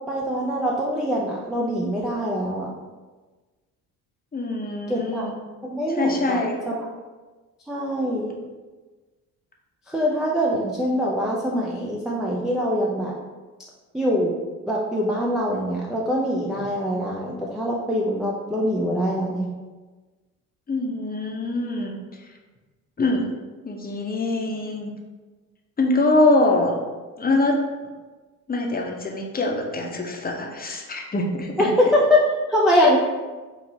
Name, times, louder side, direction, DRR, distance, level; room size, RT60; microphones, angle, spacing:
voice 1, 0.1-2.7 4.9-5.3 5.6-6.4 6.7-6.8 7.7-8.3 9.9-13.1 13.9-14.3 14.7-19.5 31.6-32.2 32.5-33.0, equal, ahead, -5 dB, 0.3 m, -23 dB
voice 2, 4.3-5.4 5.9-6.6 20.7-22.0 23.0-23.3 23.6-24.9 25.8-26.7 27.2-27.6 28.5-31.7, left 2 dB, 20° left, 1 dB, 0.7 m, -23 dB
4.6 x 2.8 x 2.7 m, 1.3 s
hypercardioid pair, 50°, 47 cm